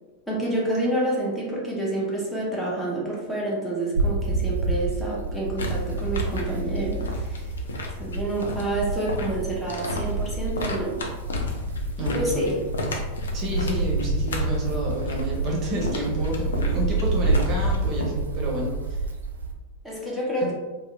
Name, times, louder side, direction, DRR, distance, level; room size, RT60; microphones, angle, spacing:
voice 1, 0.3-7.5 8.0-11.0 12.1-12.7 19.8-20.5, right 1 dB, 5° left, -5 dB, 0.5 m, -28 dB
sound 1, 3.9-19.5, right 2 dB, 70° right, 0.3 m, -28 dB
sound 2, 5.6-18.0, left 2 dB, 65° left, 0.4 m, -34 dB
voice 2, 12.0-12.4 13.3-18.7 20.4-20.5, right 1 dB, 35° right, -2 dB, 0.6 m, -29 dB
2.6 x 2.0 x 2.3 m, 1.2 s
figure-of-eight pair, 90°, 0 cm